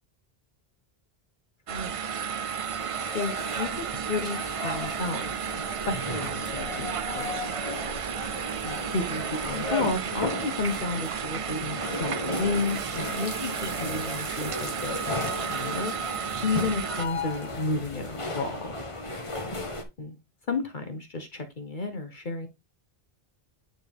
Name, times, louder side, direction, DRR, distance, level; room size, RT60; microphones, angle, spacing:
sound 1, 1.7-17.1, right 7 dB, 55° right, 0.4 m, -33 dB
sound 2, 2.1-19.8, left 2 dB, 30° left, 1.2 m, -36 dB
voice 1, 3.1-5.5 5.9-7.5 8.6-16.0 16.4-18.7 20.0-20.2 20.5-22.5, left 3 dB, 50° left, 1.1 m, -32 dB
9.4 x 3.8 x 3.5 m
omnidirectional pair, 1.0 m